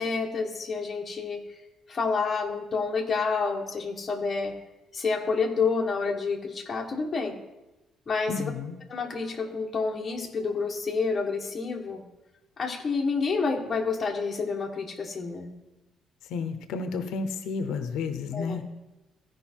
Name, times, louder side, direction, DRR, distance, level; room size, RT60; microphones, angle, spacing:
voice 1, 0.0-1.4 1.9-4.6 4.9-7.4 8.1-8.5 8.9-12.0 12.6-15.5 18.3-18.6, left 4 dB, 25° left, 0 dB, 1.2 m, -29 dB
voice 2, 8.3-8.8 16.2-18.6, left 4 dB, 80° left, 8 dB, 0.7 m, -31 dB
15.0 x 5.1 x 4.5 m, 1.0 s
cardioid pair, 165°, 0 cm